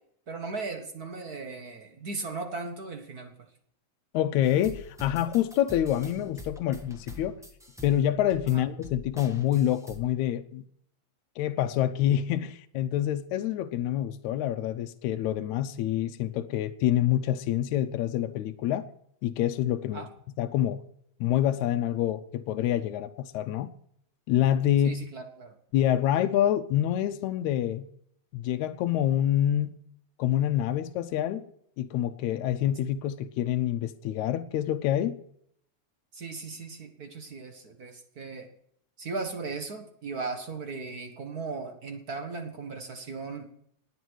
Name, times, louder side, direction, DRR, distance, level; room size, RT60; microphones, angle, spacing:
voice 1, 0.3-3.5 8.5-8.6 19.9-20.1 24.8-25.5 36.1-38.5 39.0-43.5, right 4 dB, 45° right, 1.4 m, -37 dB
voice 2, 4.1-7.4 7.8-10.6 11.4-18.9 19.2-20.1 20.4-20.8 21.2-23.7 24.3-25.0 25.7-27.9 28.3-29.7 30.2-31.4 31.8-35.2, left 11 dB, 80° left, 2.0 m, -27 dB
sound 1, 4.4-10.1, left 2 dB, 5° right, 0.4 m, -45 dB
19.0 x 9.1 x 6.3 m
omnidirectional pair, 3.3 m